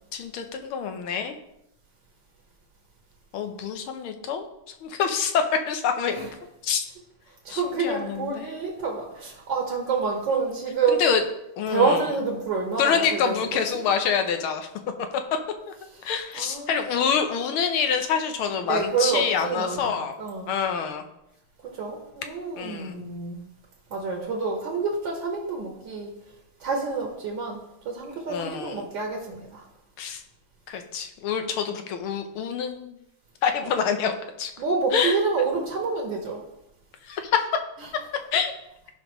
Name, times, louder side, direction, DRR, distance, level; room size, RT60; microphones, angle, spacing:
voice 1, 0.1-1.4 3.3-4.4 4.8-6.3 6.6-6.9 7.5-8.5 10.9-11.2 11.6-12.1 12.8-14.7 16.0-20.1 20.5-21.0 22.6-22.9 28.3-28.8 30.0-30.2 30.7-33.0 33.4-34.5 34.9-35.2 37.1-37.5 38.3-38.5, left 6 dB, 85° left, 6 dB, 1.7 m, -26 dB
voice 2, 7.5-11.1 11.7-13.6 16.0-16.1 16.3-17.1 18.7-19.8 20.2-20.5 21.8-23.4 23.9-26.1 26.6-27.6 27.9-29.6 33.6-33.7 34.6-36.4, right 4 dB, 65° right, 0 dB, 1.9 m, -28 dB
14.5 x 5.4 x 3.1 m, 0.88 s
omnidirectional pair, 2.3 m